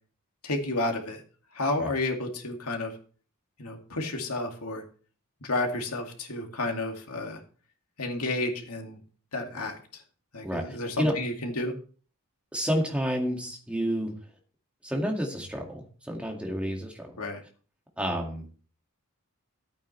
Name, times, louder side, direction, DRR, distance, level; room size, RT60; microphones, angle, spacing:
voice 1, 0.4-1.2 1.5-2.9 3.6-4.8 5.4-7.4 8.0-9.0 9.3-9.8 10.3-11.7 17.2-17.4, left 2 dB, 85° left, 2 dB, 2.3 m, -31 dB
voice 2, 10.4-11.2 12.5-14.1 14.8-17.2 18.0-18.5, equal, 5° right, 0 dB, 2.1 m, -30 dB
14.5 x 8.9 x 3.3 m, 0.41 s
head